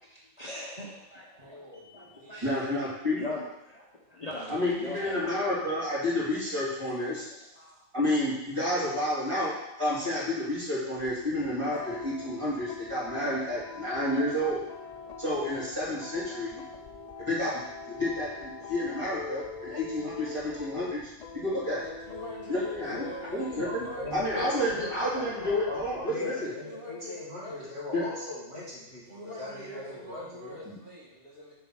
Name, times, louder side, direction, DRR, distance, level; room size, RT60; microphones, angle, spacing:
voice 1, 0.0-2.7 3.1-5.8 6.8-7.8, left 1 dB, 35° left, -3 dB, 1.0 m, -42 dB
voice 2, 1.4-2.6 21.8-25.6 26.4-27.7 28.0-28.1 29.1-31.5, equal, 40° right, -8 dB, 2.7 m, -44 dB
voice 3, 2.4-3.2 4.5-7.3 7.9-14.6 15.2-16.6 17.2-17.5 17.9-21.0 21.3-21.8 22.5-23.0 23.3-23.8 24.1-26.5 27.9-28.0 30.6-30.7, left 1 dB, 25° right, -9 dB, 3.4 m, -30 dB
sound 1, 10.9-26.1, left 4 dB, 55° left, 0.4 m, -44 dB
voice 4, 23.5-25.3 25.7-30.6, left 2 dB, 60° right, -7 dB, 2.6 m, -39 dB
6.8 x 4.6 x 6.1 m, 0.93 s
omnidirectional pair, 1.2 m